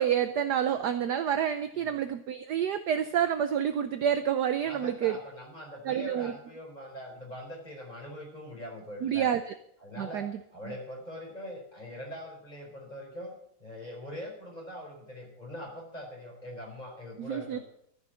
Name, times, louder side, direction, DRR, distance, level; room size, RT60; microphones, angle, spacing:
voice 1, 0.0-5.2 5.8-6.3 9.0-9.5 10.0-10.4 17.2-17.6, right 9 dB, 65° right, 10 dB, 1.1 m, -28 dB
voice 2, 4.6-9.3 9.8-13.3 13.6-17.6, equal, 20° left, 0 dB, 4.6 m, -42 dB
14.0 x 6.8 x 8.9 m, 0.71 s
omnidirectional pair, 2.2 m